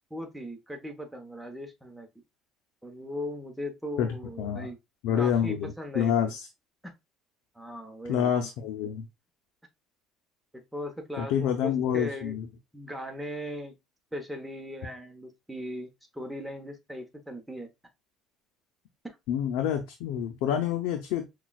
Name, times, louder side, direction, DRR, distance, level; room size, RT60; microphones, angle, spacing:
voice 1, 0.1-2.1 2.8-4.8 5.1-6.3 6.8-6.9 7.5-8.3 10.5-12.4 12.7-13.8 14.1-17.7 19.0-19.1, equal, 5° right, 0.9 m, -38 dB
voice 2, 4.0-4.7 5.0-6.5 8.1-9.1 11.2-12.5 19.3-21.2, left 9 dB, 80° left, 0.6 m, -28 dB
6.0 x 2.4 x 2.3 m
cardioid pair, 120°, 0 cm